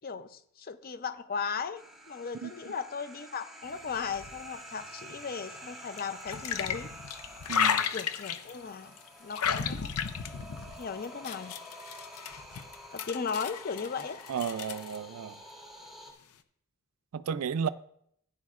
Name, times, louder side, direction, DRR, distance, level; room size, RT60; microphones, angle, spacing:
voice 1, 0.0-6.9 7.9-8.9 9.2-9.9 10.8-11.6 12.9-14.2, left 5 dB, 40° left, 0.5 m, -37 dB
sound 1, 1.7-16.1, equal, ahead, 1.6 m, -49 dB
sound 2, 3.7-5.4 6.0-8.6 9.0-15.0, left 7 dB, 85° left, 0.6 m, -34 dB
voice 2, 7.5-7.9 14.3-15.3 17.1-17.7, right 7 dB, 75° right, 0.4 m, -33 dB
15.5 x 10.0 x 2.4 m
head